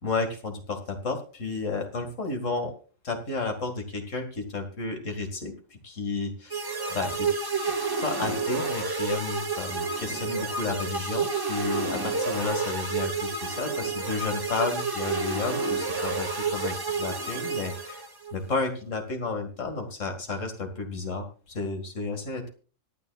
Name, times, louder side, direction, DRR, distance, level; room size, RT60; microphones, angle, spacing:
voice 1, 0.0-2.7 3.0-5.5 5.8-7.3 8.0-18.0 18.3-22.5, left 3 dB, 70° left, 5 dB, 2.4 m, -32 dB
sound 1, 6.5-18.3, right 4 dB, 20° right, 1.3 m, -30 dB
24.5 x 9.3 x 2.4 m, 0.37 s
omnidirectional pair, 1.4 m